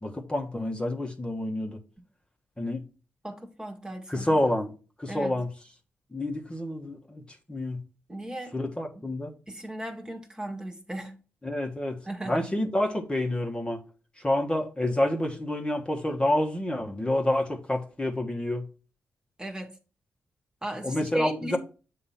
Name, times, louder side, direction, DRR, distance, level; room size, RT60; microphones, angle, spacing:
voice 1, 0.0-1.8 2.6-2.8 4.1-4.7 5.0-5.5 6.1-7.2 7.5-7.8 8.5-9.3 11.4-12.0 12.2-13.8 14.2-18.6 20.8-21.6, left 1 dB, 20° left, 1.3 m, -28 dB
voice 2, 3.2-4.4 5.1-5.4 8.1-8.5 8.9-9.0 9.5-11.2 12.1-12.4 19.4-19.7 20.6-21.6, right 1 dB, 15° right, 1.5 m, -36 dB
7.5 x 2.9 x 5.6 m
cardioid pair, 55°, 5 cm